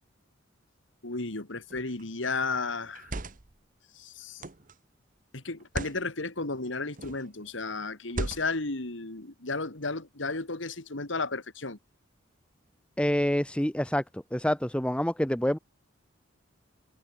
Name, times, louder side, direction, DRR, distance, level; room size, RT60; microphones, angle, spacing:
voice 1, 1.0-3.1 3.9-4.4 5.3-11.8, left 3 dB, 70° left, 2.3 m, -33 dB
sound 1, 1.7-2.0 2.8-3.6 4.4-4.7 5.6-6.0 6.9-7.3 8.1-8.7, right 2 dB, 40° right, 1.2 m, -37 dB
voice 2, 13.0-15.6, equal, 5° left, 1.1 m, -27 dB
head